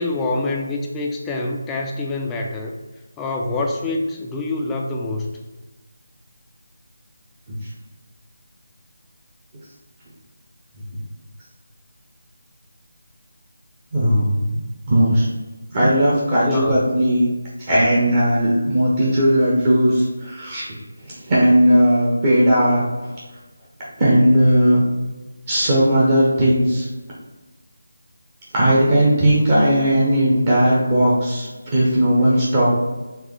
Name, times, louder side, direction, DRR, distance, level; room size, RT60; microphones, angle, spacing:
voice 1, 0.0-2.7 3.2-5.3 16.4-16.8, left 2 dB, 10° left, 0 dB, 0.4 m, -25 dB
voice 2, 13.9-14.6 14.9-15.3 15.7-17.3 17.7-20.6 21.0-22.8 24.0-24.9 25.5-26.9 28.5-32.7, equal, 30° right, -7 dB, 1.0 m, -17 dB
4.7 x 3.2 x 3.3 m, 1.2 s
figure-of-eight pair, 160°, 0 cm